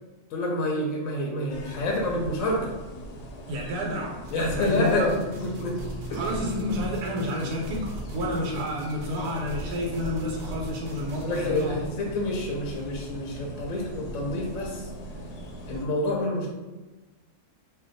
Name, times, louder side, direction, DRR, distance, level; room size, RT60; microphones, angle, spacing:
voice 1, 0.3-2.7 4.3-5.8 6.1-6.2 11.2-14.9 15.7-16.5, left 1 dB, 65° left, -1 dB, 0.8 m, -28 dB
sound 1, 1.5-15.9, right 1 dB, 85° left, 1.1 m, -40 dB
voice 2, 3.5-5.1 6.1-11.8, left 1 dB, 90° right, -1 dB, 1.1 m, -30 dB
sound 2, 4.2-11.7, right 1 dB, 75° right, 0.6 m, -40 dB
2.6 x 2.2 x 3.9 m, 1.2 s
omnidirectional pair, 1.7 m